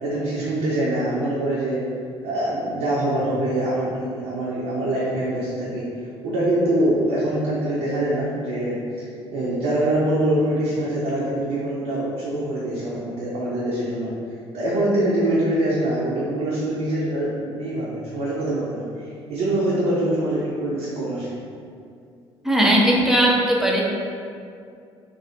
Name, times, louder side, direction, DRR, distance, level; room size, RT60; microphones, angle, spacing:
voice 1, 0.0-1.8 2.2-5.8 6.2-8.8 9.3-14.1 14.5-18.8 19.3-21.3, right 1 dB, 55° right, -7 dB, 0.5 m, -24 dB
voice 2, 22.4-23.8, right 1 dB, 5° right, -3 dB, 0.4 m, -18 dB
2.3 x 2.0 x 2.6 m, 2.3 s
figure-of-eight pair, 50°, 14 cm